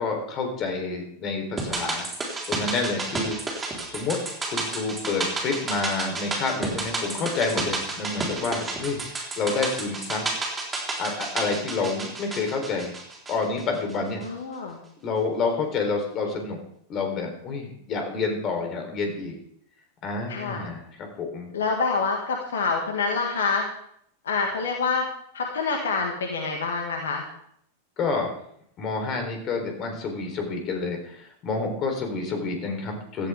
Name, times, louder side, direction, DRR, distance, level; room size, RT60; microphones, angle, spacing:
voice 1, 0.0-2.1 2.5-3.3 3.9-4.2 4.5-10.3 11.0-13.0 13.3-14.2 15.0-16.6 16.9-19.4 20.0-21.5 28.0-28.3 28.8-33.3, left 4 dB, 35° left, 4 dB, 3.9 m, -28 dB
sound 1, 1.6-13.9 14.2-14.3, right 3 dB, 15° right, 4.3 m, -31 dB
voice 2, 14.2-14.8 20.3-20.7 21.5-23.6 24.2-25.1 25.3-27.2, left 4 dB, 65° left, 2 dB, 2.0 m, -26 dB
16.5 x 14.0 x 3.7 m, 0.69 s
figure-of-eight pair, 90°, 0 cm